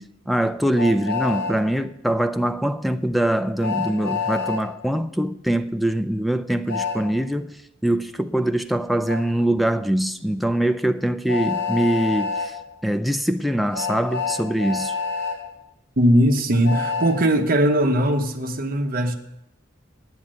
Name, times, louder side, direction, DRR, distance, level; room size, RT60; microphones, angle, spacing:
voice 1, 0.0-12.5 12.8-14.9, right 1 dB, ahead, 0.4 m, -23 dB
Train, 0.7-1.5 3.6-4.6 6.7-7.0 9.1-9.2 11.3-12.5 13.7-15.4 16.6-17.2, left 5 dB, 60° left, 2.2 m, -27 dB
voice 2, 16.0-19.2, equal, 50° right, 1.0 m, -19 dB
9.3 x 7.1 x 7.5 m
head